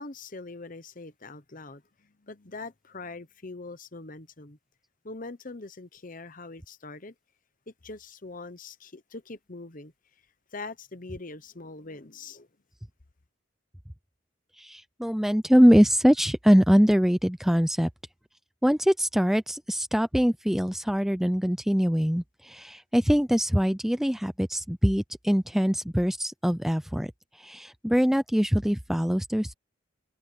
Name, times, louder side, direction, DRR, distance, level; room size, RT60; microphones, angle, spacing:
voice 1, 0.0-4.6 5.0-7.1 7.7-9.9 10.5-12.5, left 3 dB, 40° left, 1.0 m, -42 dB
voice 2, 14.6-17.9 18.6-29.6, equal, ahead, 0.4 m, -23 dB
head